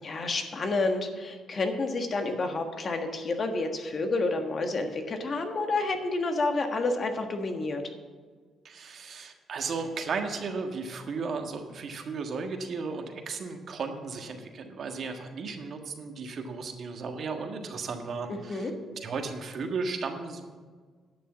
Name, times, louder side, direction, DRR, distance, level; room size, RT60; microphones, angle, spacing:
voice 1, 0.0-7.8 18.3-18.7, left 3 dB, 45° left, 5 dB, 1.5 m, -29 dB
voice 2, 8.6-18.7 19.0-20.4, right 4 dB, 55° right, 4 dB, 1.5 m, -35 dB
11.0 x 6.7 x 7.3 m, 1.5 s
cardioid pair, 90°, 0 cm